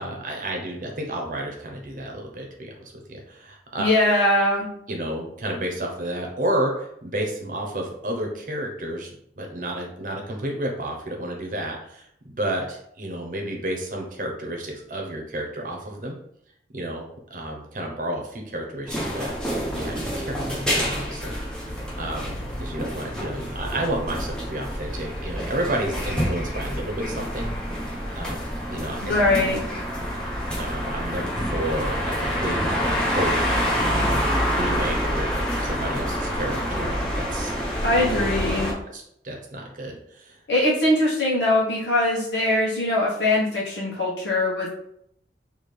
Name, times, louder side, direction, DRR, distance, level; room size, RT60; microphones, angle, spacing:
voice 1, 0.0-3.8 4.9-9.1 9.4-16.2 16.7-17.0 17.3-19.3 19.7-27.5 28.1-28.4 28.7-29.1 30.6-32.6 33.1-33.6 33.9-37.5 38.9-40.4, right 1 dB, 50° right, 1 dB, 0.8 m, -31 dB
voice 2, 3.8-4.7 29.0-29.6 37.8-38.7 40.5-44.7, left 1 dB, 80° left, -6 dB, 1.2 m, -21 dB
sound 1, 18.9-38.7, equal, 5° left, 0.8 m, -27 dB
4.2 x 2.9 x 3.3 m, 0.72 s
head